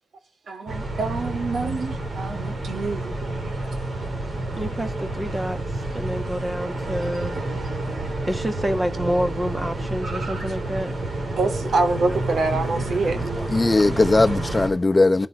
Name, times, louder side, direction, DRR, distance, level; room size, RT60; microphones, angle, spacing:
voice 1, 0.5-3.5 11.3-13.2, right 3 dB, 80° right, 2.6 m, -26 dB
sound 1, 0.7-14.7, right 2 dB, 65° right, 7.2 m, -29 dB
voice 2, 4.6-7.4 8.3-10.9, equal, 20° right, 1.7 m, -28 dB
voice 3, 13.2-15.3, left 2 dB, 25° left, 1.0 m, -19 dB
16.5 x 9.0 x 4.9 m
wide cardioid pair, 110°, 0 cm